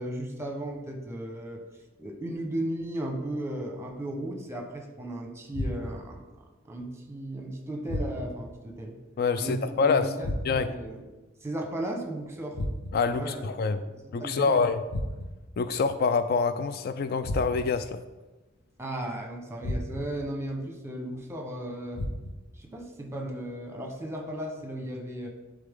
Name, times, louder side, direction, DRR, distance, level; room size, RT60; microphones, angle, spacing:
voice 1, 0.0-1.6 2.0-6.2 6.6-9.0 9.4-11.0 11.4-12.6 13.1-13.5 13.8-13.9 14.2-14.6 18.8-22.0 22.6-25.3, right 1 dB, 15° right, 1 dB, 1.0 m, -35 dB
sound 1, 5.5-6.2 7.9-8.5 10.2-10.8 12.5-13.2 14.9-15.5 17.2-17.9 19.6-20.2 21.9-22.6, left 1 dB, 85° left, 0.8 m, -34 dB
voice 2, 9.2-10.1 10.4-10.7 12.9-13.8 14.1-14.8 15.6-18.0, left 5 dB, 55° left, 11 dB, 0.3 m, -26 dB
11.0 x 3.8 x 3.7 m, 1.2 s
head